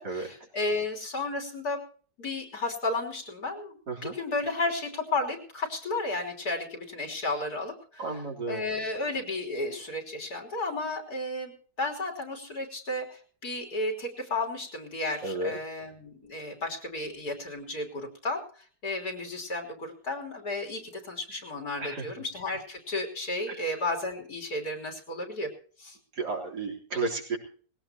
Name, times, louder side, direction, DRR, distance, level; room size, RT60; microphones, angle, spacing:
voice 1, 0.0-1.8 2.2-8.0 8.5-25.5 25.8-26.0, left 2 dB, 70° left, 2 dB, 3.9 m, -33 dB
voice 2, 8.0-8.6 15.2-15.6 21.8-22.1 23.5-23.6 26.2-27.4, right 3 dB, 80° right, 0 dB, 4.3 m, -32 dB
20.5 x 17.0 x 2.9 m, 0.43 s
omnidirectional pair, 1.7 m